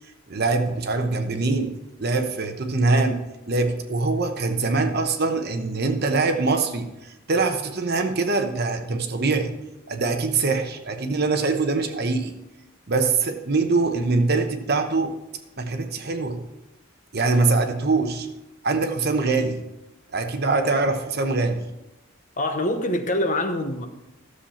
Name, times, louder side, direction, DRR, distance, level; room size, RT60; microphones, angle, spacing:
voice 1, 0.3-6.9 7.3-9.5 9.9-12.3 12.9-15.2 15.6-16.5 17.1-18.3 18.6-19.6 20.1-21.7, right 3 dB, 50° right, 6 dB, 0.9 m, -23 dB
voice 2, 22.4-23.9, left 1 dB, 35° left, 7 dB, 0.8 m, -24 dB
13.0 x 7.3 x 4.3 m, 0.94 s
head